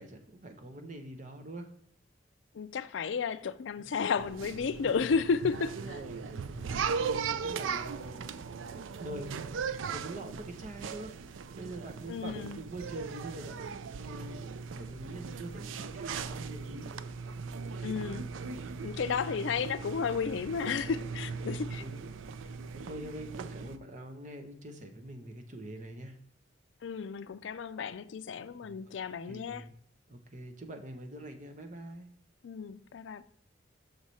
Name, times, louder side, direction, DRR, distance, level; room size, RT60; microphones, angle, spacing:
voice 1, 0.0-1.7 3.8-4.0 4.8-5.1 5.8-8.4 9.0-9.4 9.9-13.6 14.0-14.5 14.7-16.9 17.7-18.1 21.4-22.0 22.7-26.2 28.6-29.0 29.3-29.7 30.1-32.1, right 1 dB, 40° right, 0.9 m, -45 dB
voice 2, 2.5-5.7 12.1-12.6 17.8-18.2 18.8-21.8 26.8-29.7 32.4-33.2, left 5 dB, 75° left, 0.4 m, -33 dB
sound 1, 4.2-23.8, right 5 dB, 85° right, 0.4 m, -38 dB
6.5 x 4.8 x 4.1 m
head